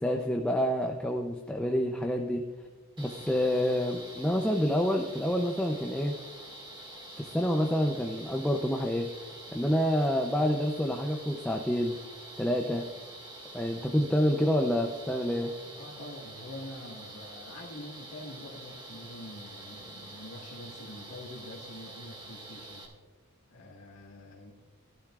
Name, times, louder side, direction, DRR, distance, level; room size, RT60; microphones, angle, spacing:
voice 1, 0.0-2.4 3.0-6.1 7.2-9.1 9.5-12.0 12.4-12.9 13.5-15.5, equal, 5° left, 1 dB, 0.6 m, -28 dB
sound 1, 3.0-22.9, right 1 dB, 20° right, 1.9 m, -46 dB
voice 2, 15.8-22.9 23.5-24.5, left 1 dB, 85° left, -5 dB, 1.8 m, -46 dB
16.0 x 12.0 x 2.4 m, 1.4 s
head